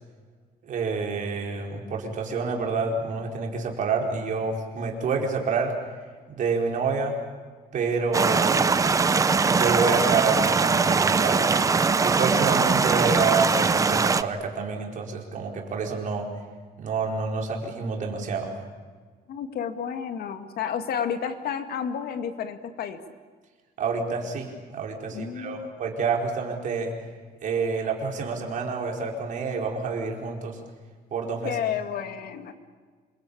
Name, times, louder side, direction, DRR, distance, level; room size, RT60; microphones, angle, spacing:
voice 1, 0.6-5.7 6.3-7.2 7.7-8.8 9.5-16.3 16.8-18.5 23.8-26.9 27.4-30.6 31.1-31.6, right 4 dB, 50° right, 1 dB, 4.6 m, -28 dB
sound 1, 8.1-14.2, right 4 dB, 20° right, 0.7 m, -21 dB
voice 2, 19.3-23.0 25.1-25.7 31.4-32.5, left 8 dB, 65° left, 8 dB, 2.1 m, -31 dB
27.0 x 23.0 x 8.7 m, 1.5 s
cardioid pair, 170°, 17 cm